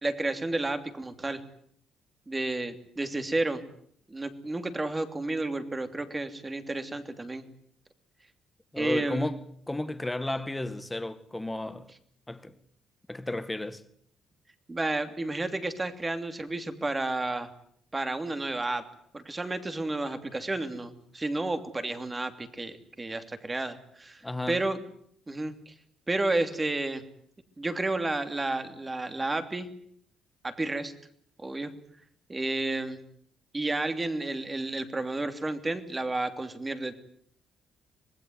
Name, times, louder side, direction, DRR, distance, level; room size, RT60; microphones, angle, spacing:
voice 1, 0.0-1.4 2.3-3.6 4.1-7.4 8.8-9.3 10.3-10.4 14.7-17.5 17.9-24.8 25.3-25.7 26.1-27.0 27.6-29.7 30.4-30.9 31.4-31.7 32.3-33.0 33.5-36.9, right 2 dB, 15° right, 3.0 m, -31 dB
voice 2, 8.7-9.4 9.7-11.9 12.3-12.5 13.1-13.8 24.2-24.6, left 2 dB, 10° left, 2.0 m, -33 dB
26.0 x 20.0 x 9.5 m
cardioid pair, 125°, 0 cm